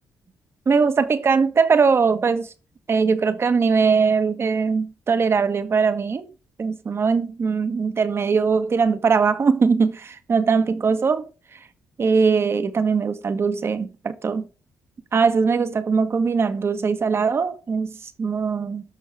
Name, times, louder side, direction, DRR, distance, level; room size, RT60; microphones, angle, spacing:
voice 1, 0.7-2.5 2.9-6.3 6.6-11.3 12.0-14.5 15.1-17.9 18.2-18.8, right 5 dB, 40° right, 1.4 m, -21 dB
17.5 x 6.3 x 3.6 m
cardioid pair, 95°, 6 cm